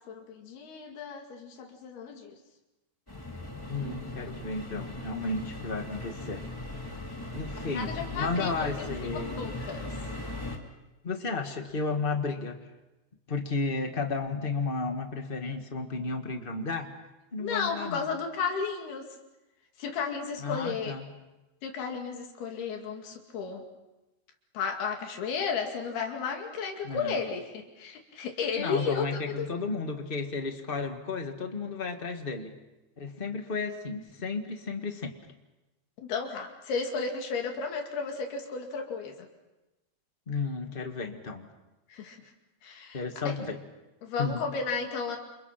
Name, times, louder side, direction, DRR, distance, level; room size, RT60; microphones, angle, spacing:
voice 1, 0.1-2.4 7.6-9.9 17.4-19.1 19.8-20.9 21.6-23.6 24.5-29.5 36.0-39.3 41.9-42.2 42.6-43.3 44.0-45.2, left 5 dB, 80° left, 2 dB, 4.3 m, -33 dB
sound 1, 3.1-10.6, left 2 dB, 5° left, 2.5 m, -38 dB
voice 2, 3.7-6.4 7.3-9.4 11.0-12.6 13.3-16.9 17.3-18.0 20.4-21.1 26.8-27.1 28.6-32.5 33.0-35.2 40.3-41.5 42.9-43.6 44.2-44.4, left 4 dB, 55° left, 4 dB, 0.5 m, -33 dB
29.0 x 28.0 x 5.9 m, 1.0 s
omnidirectional pair, 4.4 m